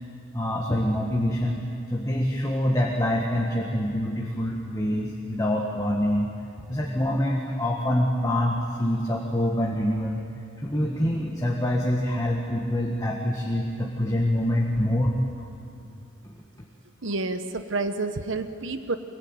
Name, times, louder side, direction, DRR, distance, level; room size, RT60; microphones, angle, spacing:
voice 1, 0.3-6.3 6.7-10.2 10.6-15.1 16.2-16.4, left 1 dB, 15° left, -1 dB, 1.7 m, -25 dB
voice 2, 17.0-19.0, right 3 dB, 65° right, 9 dB, 1.1 m, -29 dB
24.5 x 22.0 x 9.2 m, 2.6 s
head